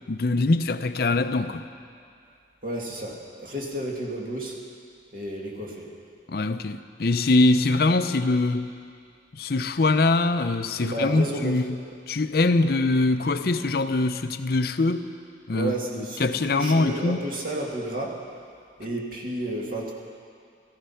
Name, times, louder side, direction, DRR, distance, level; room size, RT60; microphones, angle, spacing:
voice 1, 0.1-1.7 6.3-8.7 9.3-15.1 15.5-17.2, left 2 dB, 55° left, 10 dB, 0.5 m, -23 dB
voice 2, 2.6-4.6 5.1-5.9 10.8-11.6 12.6-12.7 15.5-18.2 18.8-19.9, right 1 dB, 50° right, -2 dB, 2.1 m, -31 dB
14.5 x 14.5 x 5.7 m, 2.3 s
head